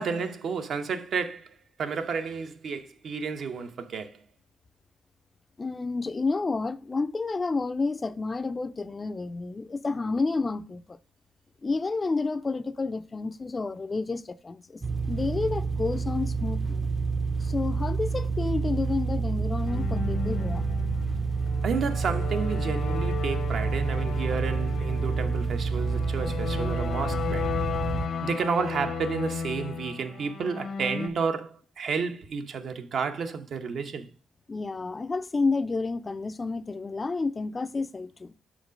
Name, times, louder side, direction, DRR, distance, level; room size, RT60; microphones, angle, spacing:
voice 1, 0.0-4.2 21.6-27.5 28.2-34.1, right 5 dB, 60° right, 0.9 m, -31 dB
voice 2, 5.6-11.0 11.6-14.8 15.1-16.9 17.4-20.7 34.5-38.3, left 3 dB, 25° left, 0.5 m, -30 dB
sound 1, 14.8-28.1, right 4 dB, 25° right, 0.6 m, -28 dB
sound 2, 19.7-31.1, left 6 dB, 65° left, 0.8 m, -35 dB
6.3 x 5.0 x 5.1 m
cardioid pair, 90°, 0 cm